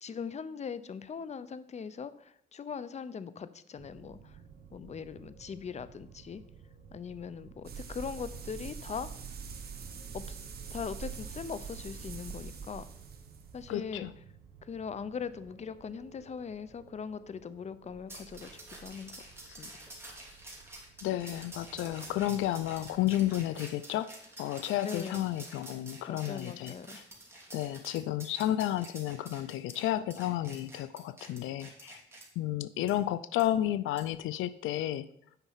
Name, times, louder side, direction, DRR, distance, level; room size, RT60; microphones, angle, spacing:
voice 1, 0.0-4.4 4.7-6.4 6.9-9.1 10.1-10.4 10.7-12.9 13.5-14.1 14.6-19.1 19.5-20.0 24.8-25.2 26.1-27.0, left 6 dB, 35° left, 15 dB, 0.6 m, -40 dB
sound 1, 3.8-23.5, right 6 dB, 90° right, 1.7 m, -56 dB
sound 2, 7.6-13.7, right 6 dB, 50° right, 1.4 m, -43 dB
voice 2, 13.7-14.1 21.0-26.7 27.5-32.0 32.4-35.1, left 13 dB, 85° left, 16 dB, 0.4 m, -32 dB
sound 3, 18.1-32.2 32.9-33.0 33.4-33.5 34.0-34.2, right 2 dB, 10° right, 3.1 m, -49 dB
9.1 x 5.5 x 5.6 m, 0.70 s
cardioid pair, 90°, 20 cm